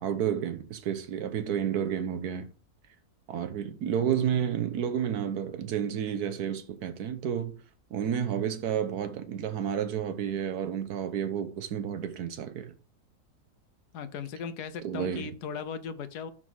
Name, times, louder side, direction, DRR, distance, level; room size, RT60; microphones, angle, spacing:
voice 1, 0.0-2.5 3.3-7.5 7.9-12.7 14.8-15.3, right 8 dB, 75° right, 1.4 m, -31 dB
voice 2, 13.9-16.3, left 6 dB, 80° left, 1.3 m, -37 dB
6.1 x 6.1 x 4.5 m
omnidirectional pair, 1.7 m